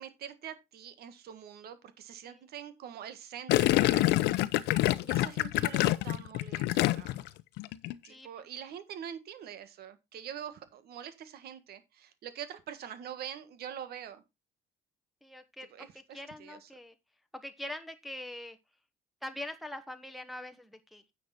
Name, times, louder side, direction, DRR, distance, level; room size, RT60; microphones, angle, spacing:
voice 1, 0.0-4.4 5.0-7.3 8.0-14.2 15.7-16.7, right 9 dB, 70° right, 1.7 m, -45 dB
Gurgling, 3.5-7.3 7.6-8.0, left 16 dB, 85° left, 0.7 m, -26 dB
voice 2, 15.2-15.7 16.1-16.9 17.3-18.6 19.2-21.0, left 1 dB, ahead, 1.1 m, -43 dB
9.7 x 6.5 x 4.3 m
cardioid pair, 110°, 17 cm